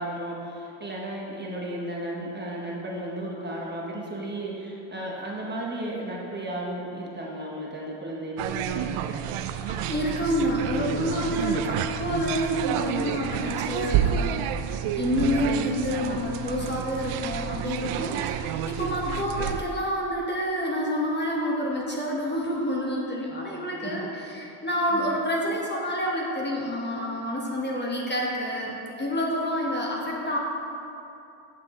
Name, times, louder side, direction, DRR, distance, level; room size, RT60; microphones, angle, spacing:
voice 1, 0.0-9.3 23.3-23.5 23.8-24.0 24.9-25.1, right 1 dB, 20° right, -3 dB, 1.0 m, -34 dB
sound 1, 8.4-19.6, right 9 dB, 85° right, 0.5 m, -29 dB
voice 2, 9.7-30.4, equal, 20° left, -3 dB, 1.0 m, -28 dB
8.3 x 7.4 x 3.7 m, 2.7 s
cardioid pair, 135°, 49 cm